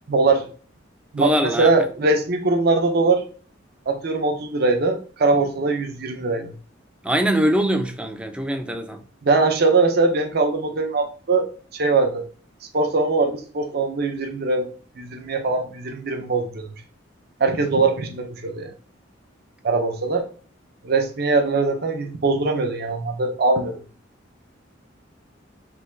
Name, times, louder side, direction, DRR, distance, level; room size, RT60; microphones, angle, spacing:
voice 1, 0.1-0.5 1.1-3.2 3.9-6.5 9.2-12.3 12.7-14.7 15.0-16.7 17.4-18.7 19.6-20.3 20.8-23.8, right 3 dB, 55° right, 0.6 m, -21 dB
voice 2, 1.2-1.7 7.0-9.0, equal, 5° right, 0.3 m, -22 dB
3.3 x 2.2 x 3.2 m
head